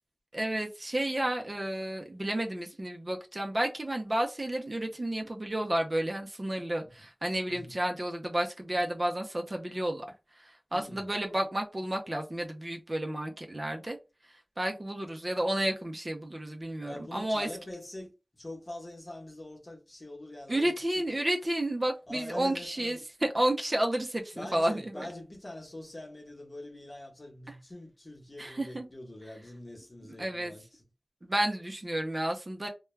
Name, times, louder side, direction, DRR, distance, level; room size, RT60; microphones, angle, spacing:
voice 1, 0.3-10.1 10.4-14.0 14.6-17.5 20.5-25.1 27.5-27.6 28.4-28.9 30.1-30.5 31.2-32.7, right 1 dB, 35° right, 0.5 m, -31 dB
voice 2, 7.5-7.8 10.7-11.1 16.8-21.0 22.1-23.0 24.3-30.8, left 1 dB, 45° left, 1.0 m, -44 dB
2.2 x 2.2 x 3.1 m
wide cardioid pair, 60°, 0 cm